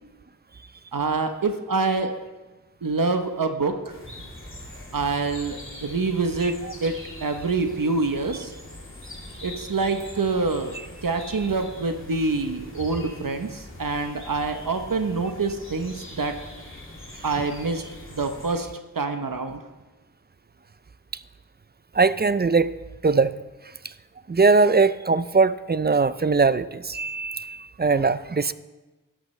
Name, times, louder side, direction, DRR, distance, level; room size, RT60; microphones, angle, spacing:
voice 1, 0.9-2.1 2.8-3.9 4.9-6.9 7.2-8.5 9.4-16.3 17.2-17.8 18.1-18.7 18.9-19.6, right 3 dB, 75° right, 6 dB, 0.9 m, -26 dB
sound 1, 3.9-18.6, left 1 dB, 35° left, 2.4 m, -42 dB
voice 2, 21.9-22.7 23.0-23.4 24.3-28.5, right 4 dB, 30° right, 15 dB, 0.4 m, -20 dB
12.5 x 11.5 x 3.2 m, 1.2 s
wide cardioid pair, 40°, 34 cm